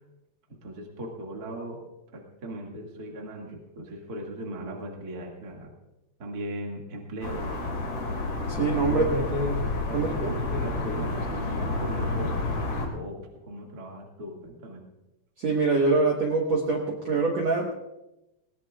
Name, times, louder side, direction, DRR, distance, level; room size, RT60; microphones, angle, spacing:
voice 1, 0.6-1.8 2.1-5.7 6.2-7.4 8.9-9.6 9.9-12.3 12.9-14.8, equal, 35° right, 0 dB, 1.4 m, -36 dB
sound 1, 7.2-12.9, left 2 dB, 40° left, 2.7 m, -30 dB
voice 2, 8.5-9.1 9.9-10.3 15.4-17.7, right 3 dB, 85° right, -1 dB, 1.4 m, -24 dB
20.5 x 18.5 x 2.4 m, 0.94 s
omnidirectional pair, 5.1 m